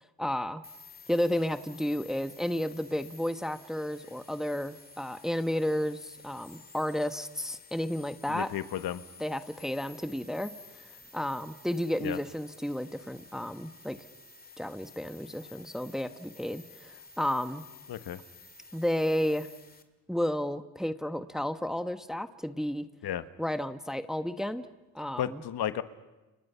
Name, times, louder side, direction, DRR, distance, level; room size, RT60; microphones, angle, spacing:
voice 1, 0.2-0.6 1.1-8.5 9.2-10.5 11.1-14.0 14.6-17.6 18.7-19.5 20.1-22.9 23.4-24.7 24.9-25.4, left 1 dB, ahead, 10 dB, 1.1 m, -32 dB
sound 1, 0.6-19.8, left 3 dB, 20° left, 2.3 m, -53 dB
voice 2, 8.3-9.0 12.0-12.2 17.9-18.2 23.0-23.2 25.2-25.8, left 11 dB, 55° left, 11 dB, 1.5 m, -33 dB
30.0 x 29.5 x 5.7 m, 1.1 s
cardioid pair, 95°, 45 cm